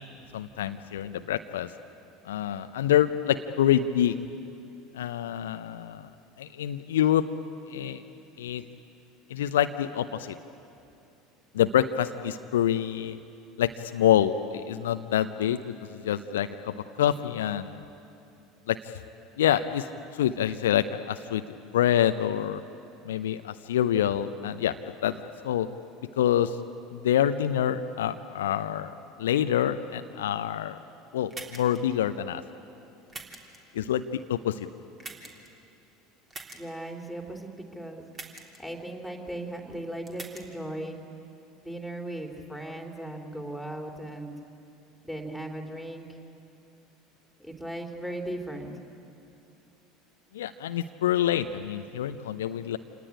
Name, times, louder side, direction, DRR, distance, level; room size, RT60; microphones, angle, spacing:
voice 1, 0.3-1.7 2.2-4.1 4.9-6.1 6.4-7.2 7.7-8.0 8.4-8.6 9.3-10.4 11.5-13.2 13.6-17.8 18.7-18.9 19.4-19.9 20.1-21.4 21.7-22.6 23.0-24.8 25.0-25.7 26.2-26.6 26.9-30.8 31.1-32.4 33.7-34.7 50.3-52.8, left 10 dB, 65° left, 10 dB, 0.7 m, -26 dB
sound 1, 31.3-31.8 33.1-33.6 35.0-35.5 36.3-36.6 38.1-38.6 40.1-40.4, right 3 dB, 25° right, 3.4 m, -42 dB
voice 2, 36.5-38.1 38.6-41.0 41.6-44.3 45.0-46.1 47.4-48.7, right 1 dB, ahead, 2 dB, 3.4 m, -37 dB
27.0 x 19.0 x 9.9 m, 2.7 s
figure-of-eight pair, 70°, 0 cm